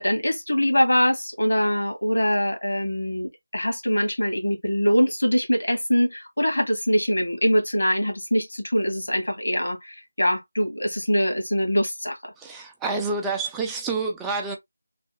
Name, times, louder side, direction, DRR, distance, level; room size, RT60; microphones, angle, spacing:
voice 1, 0.0-12.3, equal, 85° left, 1.6 m, -23 dB
voice 2, 12.4-14.6, right 3 dB, 5° right, 0.5 m, -28 dB
3.3 x 2.7 x 3.1 m
figure-of-eight pair, 165°, 0 cm